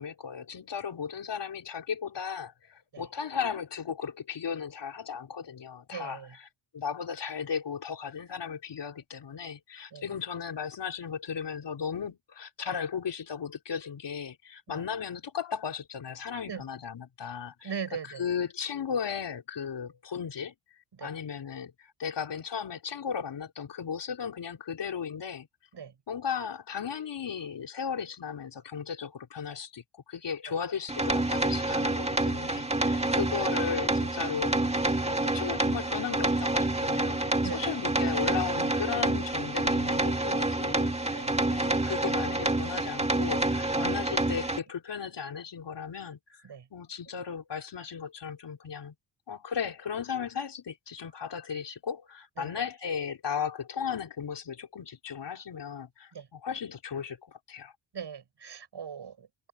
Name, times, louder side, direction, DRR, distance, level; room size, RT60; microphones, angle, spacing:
voice 1, 0.0-6.2 6.7-17.7 18.2-20.5 21.0-25.5 26.1-49.0 49.3-57.7, left 7 dB, 60° left, 3.7 m, -36 dB
voice 2, 5.9-6.4 9.9-10.1 14.7-14.8 16.5-16.6 17.6-18.3 20.9-21.1 25.7-26.0 30.5-30.6 32.9-33.2 37.4-37.7 41.1-41.4 46.4-46.7 52.4-52.6 56.1-56.3 57.9-59.5, right 7 dB, 55° right, 7.5 m, -40 dB
sound 1, 30.9-44.6, right 2 dB, 15° right, 2.2 m, -28 dB
cardioid pair, 65°, 48 cm